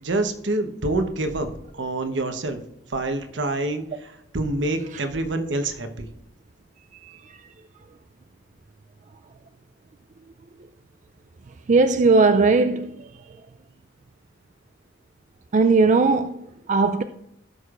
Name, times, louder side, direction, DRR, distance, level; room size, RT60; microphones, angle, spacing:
voice 1, 0.0-2.6 2.9-6.1, right 2 dB, 75° right, 1.0 m, -27 dB
voice 2, 11.7-13.1 15.5-17.0, right 3 dB, 40° right, 0.4 m, -19 dB
16.0 x 6.5 x 2.5 m
head